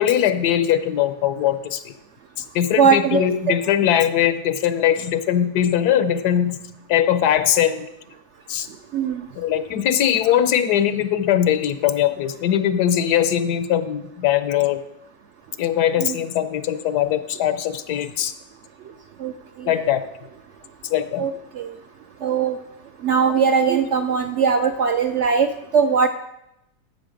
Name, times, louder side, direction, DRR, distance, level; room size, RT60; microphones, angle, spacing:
voice 1, 0.0-1.9 2.5-6.6 6.9-7.9 8.5-8.7 9.4-14.8 15.6-18.3 19.7-20.0 20.9-21.3, left 10 dB, 85° left, 11 dB, 1.3 m, -20 dB
voice 2, 2.8-3.5 8.9-9.2 10.3-10.4 16.0-16.2 19.2-19.3 19.6-19.8 21.2-21.7 22.2-22.6 23.0-25.5 25.7-26.1, right 6 dB, 65° right, 7 dB, 0.7 m, -20 dB
12.5 x 6.5 x 5.1 m, 0.84 s
omnidirectional pair, 1.7 m